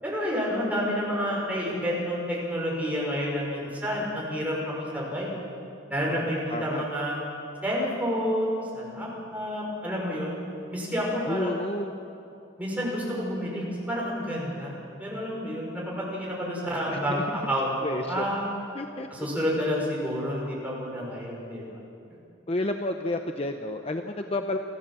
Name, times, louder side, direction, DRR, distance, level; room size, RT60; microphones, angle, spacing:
voice 1, 0.0-5.4 5.9-7.2 7.6-10.4 10.7-11.6 12.6-17.8 18.1-18.6 19.1-21.6, equal, 10° right, -4 dB, 5.7 m, -29 dB
voice 2, 6.1-6.9 11.2-11.9 16.9-17.5 17.8-18.2 18.7-19.1 22.5-24.6, left 1 dB, 30° left, 5 dB, 0.7 m, -31 dB
29.5 x 13.5 x 7.6 m, 2.6 s
head